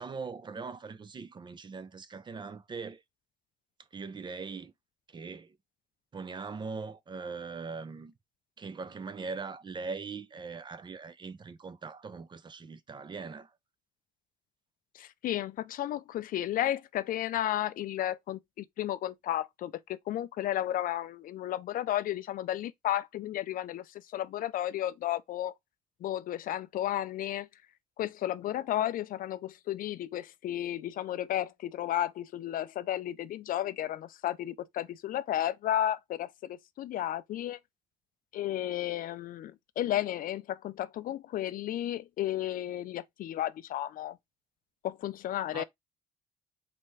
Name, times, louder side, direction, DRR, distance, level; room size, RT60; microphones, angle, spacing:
voice 1, 0.0-3.0 3.9-4.7 5.1-5.6 6.1-8.1 8.6-13.5 45.5-45.6, right 4 dB, 25° right, 0.5 m, -41 dB
voice 2, 14.9-25.5 26.0-27.5 28.0-37.6 38.3-44.2 44.8-45.6, left 12 dB, 55° left, 0.4 m, -33 dB
4.2 x 3.4 x 3.1 m
cardioid pair, 110°, 17 cm